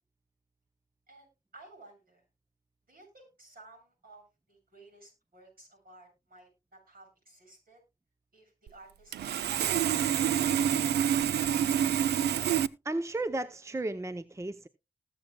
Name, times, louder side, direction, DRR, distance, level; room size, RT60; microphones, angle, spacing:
voice 1, 1.1-2.2 2.9-7.8 8.3-10.7, right 2 dB, 60° right, 7.9 m, -56 dB
Sawing, 8.7-8.8 9.1-12.7, right 9 dB, 85° right, 0.4 m, -27 dB
voice 2, 12.8-14.7, right 2 dB, 15° right, 0.6 m, -34 dB
19.5 x 7.4 x 2.2 m
cardioid pair, 55°, 17 cm